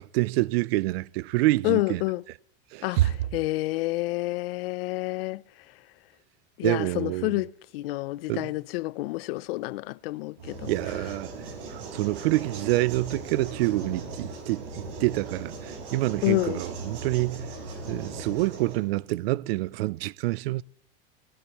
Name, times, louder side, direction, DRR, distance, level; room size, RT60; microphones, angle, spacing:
voice 1, 0.0-2.0 2.7-3.1 6.6-7.3 8.3-8.5 10.6-11.3 11.7-17.5 17.9-20.6, right 19 dB, 85° right, 0.5 m, -27 dB
voice 2, 1.6-2.2 2.8-5.4 6.6-10.7 16.2-16.6, left 20 dB, 80° left, 0.5 m, -29 dB
sound 1, 10.4-18.8, right 3 dB, 65° right, 4.9 m, -38 dB
21.5 x 19.5 x 3.0 m
supercardioid pair, 175°, 29 cm